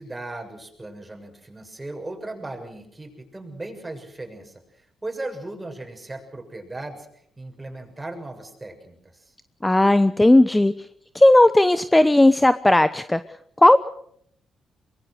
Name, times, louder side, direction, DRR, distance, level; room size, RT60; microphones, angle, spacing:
voice 1, 0.0-7.1 7.4-9.3, right 2 dB, 20° right, 4 dB, 6.9 m, -37 dB
voice 2, 9.6-10.7 11.1-13.2 13.6-13.8, left 1 dB, 15° left, 12 dB, 1.0 m, -15 dB
23.5 x 21.0 x 6.5 m, 0.67 s
supercardioid pair, 60°, 0 cm